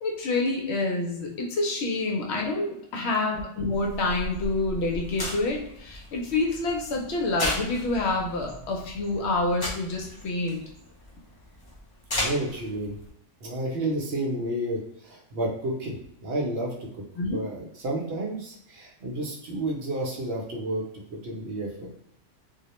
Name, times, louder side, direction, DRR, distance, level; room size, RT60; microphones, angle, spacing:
voice 1, 0.0-10.6 17.1-17.4, left 2 dB, 70° left, 0 dB, 0.8 m, -27 dB
sound 1, 3.7-13.1, left 1 dB, 40° left, 0.3 m, -36 dB
voice 2, 12.1-13.0 13.4-17.0 17.3-20.8 21.1-21.9, right 1 dB, 65° right, -2 dB, 0.8 m, -31 dB
2.3 x 2.0 x 2.9 m, 0.74 s
omnidirectional pair, 1.3 m